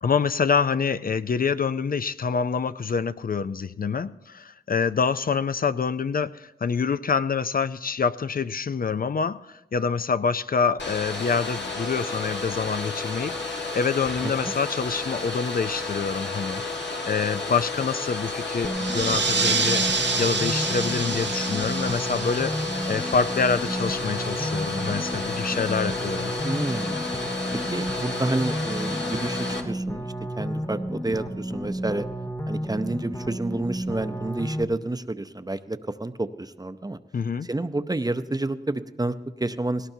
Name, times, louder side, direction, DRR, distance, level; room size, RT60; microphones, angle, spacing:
voice 1, 0.0-16.6 17.0-22.5 22.9-26.3 37.1-37.5, left 5 dB, 55° left, 13 dB, 0.4 m, -26 dB
Domestic sounds home sounds, 10.8-29.6, left 3 dB, 90° left, 1.5 m, -31 dB
sound 1, 18.6-34.6, right 1 dB, 20° left, 1.2 m, -32 dB
sound 2, 18.7-23.9, right 4 dB, 85° right, 1.0 m, -28 dB
voice 2, 26.4-26.9 27.5-30.1 30.4-32.1 32.5-37.0 37.4-39.9, right 2 dB, 20° right, 11 dB, 0.6 m, -29 dB
18.5 x 17.5 x 2.7 m, 0.94 s
wide cardioid pair, 60°, 18 cm